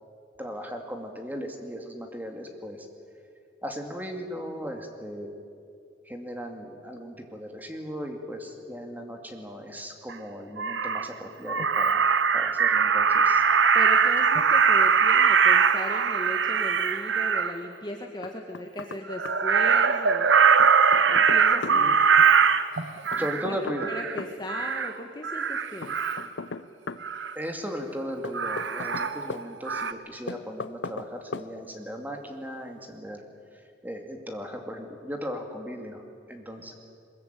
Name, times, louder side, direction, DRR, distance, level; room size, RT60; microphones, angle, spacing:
voice 1, 0.4-2.9 3.6-5.3 6.0-13.4 21.7-22.0 23.2-23.9 27.3-33.2 33.5-36.0 36.3-36.7, equal, 10° right, 3 dB, 2.5 m, -37 dB
Crow, 10.1-10.2 10.6-11.1 11.5-17.5 19.1-23.4 23.8-24.2 24.5-24.9 25.2-26.3 27.0-27.3 28.3-29.4 29.7-29.9, right 6 dB, 90° right, 1.0 m, -22 dB
voice 2, 13.7-20.3 21.0-22.0 23.2-23.6 23.9-26.0 36.7-36.8, left 1 dB, 25° left, 2 dB, 1.4 m, -38 dB
Knock, 18.2-19.0 19.3-19.4 20.6-21.8 23.1-24.4 25.8-27.1 28.2-29.4 30.3-31.1 31.3-31.5, left 3 dB, 85° left, 0.8 m, -36 dB
22.5 x 21.5 x 9.2 m, 2.5 s
head